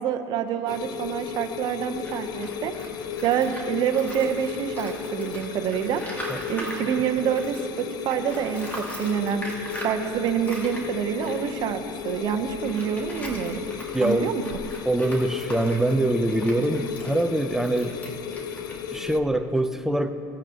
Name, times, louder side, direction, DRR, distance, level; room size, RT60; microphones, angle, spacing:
voice 1, 0.0-2.7 3.2-9.5 9.7-13.6 14.0-14.4, right 9 dB, 50° right, 6 dB, 0.8 m, -27 dB
sound 1, 0.7-19.2, left 8 dB, 45° left, 0.5 m, -34 dB
Tools, 1.9-7.8 8.1-19.5, equal, 15° left, 2.1 m, -41 dB
voice 2, 13.9-14.3 14.9-18.0 18.9-20.1, right 1 dB, 5° right, 8 dB, 0.6 m, -24 dB
17.0 x 8.7 x 2.9 m, 2.8 s
supercardioid pair, 110°, 9 cm